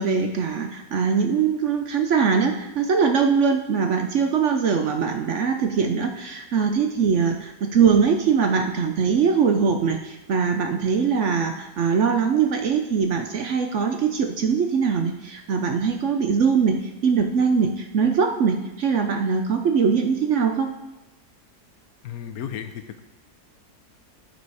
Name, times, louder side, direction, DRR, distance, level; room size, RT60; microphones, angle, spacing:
voice 1, 0.0-20.7, right 6 dB, 60° right, 5 dB, 0.9 m, -22 dB
voice 2, 22.0-23.0, left 9 dB, 70° left, 8 dB, 1.1 m, -34 dB
9.3 x 6.9 x 4.8 m, 0.97 s
omnidirectional pair, 1.7 m